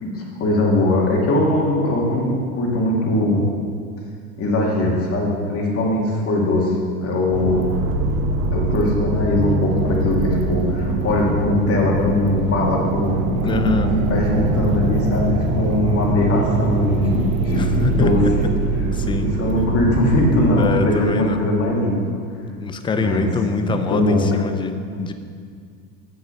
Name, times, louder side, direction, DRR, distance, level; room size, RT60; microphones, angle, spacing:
voice 1, 0.0-3.4 4.4-7.6 8.5-17.7 17.9-18.2 19.2-22.0 23.0-23.3 23.6-24.3, left 1 dB, 30° left, -2 dB, 2.2 m, -20 dB
sound 1, 7.3-20.7, right 2 dB, 80° right, 1.2 m, -23 dB
voice 2, 13.4-14.0 17.6-18.3 18.9-19.3 20.6-21.4 22.6-25.1, left 4 dB, 10° left, 8 dB, 0.5 m, -24 dB
8.0 x 6.2 x 6.9 m, 2.1 s
hypercardioid pair, 110°, 44 cm